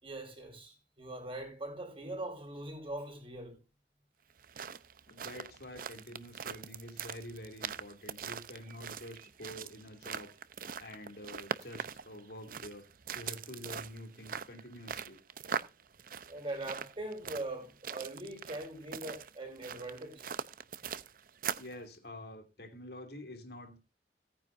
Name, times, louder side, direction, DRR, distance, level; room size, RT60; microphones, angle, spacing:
voice 1, 0.0-3.6 16.3-20.3, right 2 dB, 30° right, 4.7 m, -41 dB
sound 1, 4.3-21.8, right 7 dB, 55° right, 0.7 m, -42 dB
voice 2, 5.1-10.3 10.8-12.9 13.1-15.2 21.6-23.8, left 1 dB, 65° left, 2.6 m, -47 dB
17.5 x 9.7 x 2.6 m
head